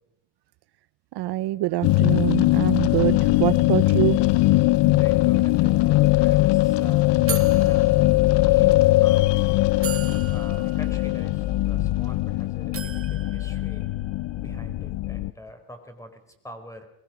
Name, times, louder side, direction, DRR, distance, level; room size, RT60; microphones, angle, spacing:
voice 1, 1.2-4.2, right 16 dB, 55° right, 14 dB, 0.8 m, -25 dB
sound 1, 1.8-15.3, left 18 dB, 60° left, 0.8 m, -20 dB
voice 2, 4.8-9.5 10.3-13.9 14.4-16.9, equal, 5° left, 6 dB, 4.7 m, -44 dB
sound 2, 5.9-6.0 6.3-6.5 7.3-8.7 9.3-9.4 9.8-12.2 12.7-14.4, right 8 dB, 30° right, 1.1 m, -38 dB
22.5 x 21.0 x 6.2 m, 0.82 s
cardioid pair, 110°, 47 cm